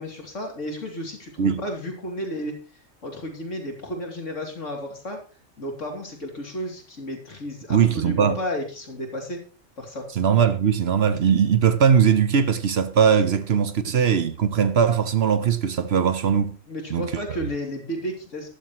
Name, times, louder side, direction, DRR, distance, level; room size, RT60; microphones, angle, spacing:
voice 1, 0.0-2.6 3.0-5.2 5.6-9.4 9.8-10.1 13.8-14.1 16.7-18.5, equal, 70° left, 3.3 m, -33 dB
voice 2, 7.7-8.4 10.2-16.6 16.9-17.4, right 7 dB, 55° right, 1.0 m, -20 dB
13.0 x 11.5 x 3.1 m
omnidirectional pair, 1.3 m